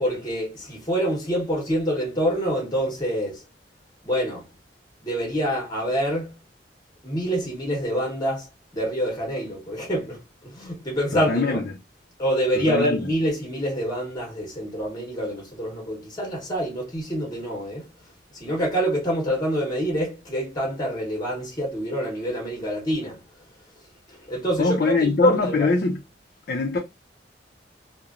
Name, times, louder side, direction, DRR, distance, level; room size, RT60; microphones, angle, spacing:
voice 1, 0.0-3.4 4.0-4.5 5.0-6.4 7.0-11.6 12.2-17.9 18.3-23.2 24.1-25.7, equal, 25° left, 0.8 m, -26 dB
voice 2, 11.1-11.6 12.7-13.0 24.6-26.0 26.5-26.8, left 3 dB, 55° left, 0.4 m, -23 dB
2.9 x 2.1 x 2.4 m
head